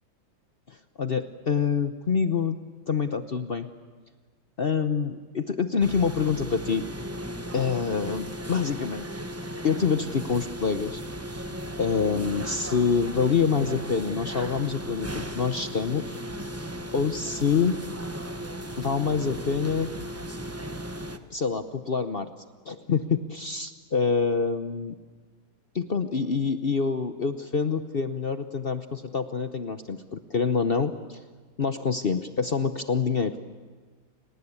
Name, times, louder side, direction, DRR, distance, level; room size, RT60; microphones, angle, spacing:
voice 1, 0.7-2.6 2.9-3.7 4.6-6.8 7.5-9.1 9.6-11.0 11.3-11.4 11.8-16.2 16.9-17.8 18.8-19.9 21.3-22.3 22.7-24.9 25.7-31.2 31.6-33.4, left 5 dB, 50° left, 9 dB, 0.6 m, -26 dB
sound 1, 5.8-21.2, equal, 15° right, 0.6 m, -36 dB
29.5 x 19.5 x 8.5 m, 1.4 s
omnidirectional pair, 2.1 m